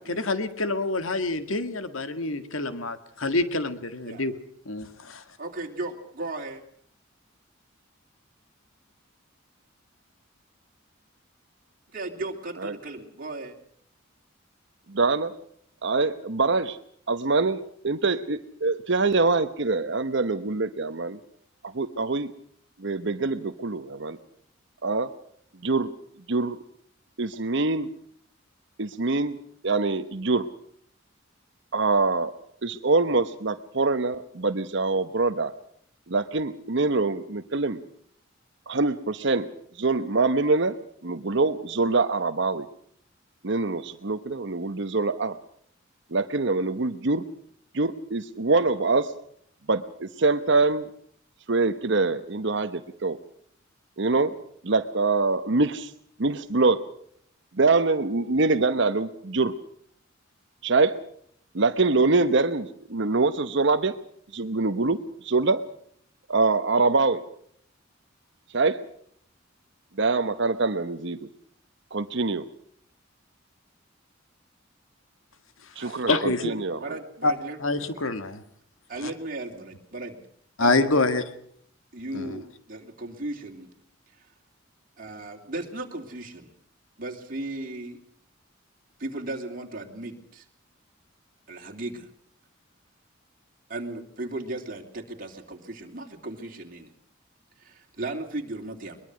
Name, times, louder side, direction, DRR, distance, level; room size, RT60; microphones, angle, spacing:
voice 1, 0.1-4.3 4.7-5.2 75.8-76.5 77.2-77.3 77.6-78.4 79.0-79.1 80.6-81.2 82.1-82.4, left 2 dB, 90° left, 11 dB, 2.0 m, -26 dB
voice 2, 5.4-6.6 11.9-13.5 75.8-76.1 76.5-78.1 78.9-80.2 80.6-80.9 81.9-83.7 85.0-86.5 87.0-88.0 89.0-90.4 91.5-92.1 93.7-96.9 97.6-99.0, right 2 dB, 45° right, 1 dB, 3.0 m, -36 dB
voice 3, 14.9-15.3 15.8-16.8 17.1-21.2 21.7-22.3 22.8-24.2 24.8-25.1 25.6-25.9 26.3-26.6 27.2-27.9 28.8-29.4 29.6-30.5 31.7-32.3 32.6-35.5 36.1-37.8 38.7-39.5 39.8-40.8 41.0-42.7 43.4-45.4 46.1-47.3 47.7-49.1 49.7-50.9 51.5-53.2 54.0-54.4 54.6-55.9 56.2-56.8 57.5-59.5 60.6-61.0 61.5-64.0 64.3-65.6 66.3-67.2 68.5-68.8 70.0-71.3 71.9-72.4 75.8-77.0, right 3 dB, 60° right, 10 dB, 1.0 m, -24 dB
22.5 x 22.0 x 6.2 m, 0.65 s
head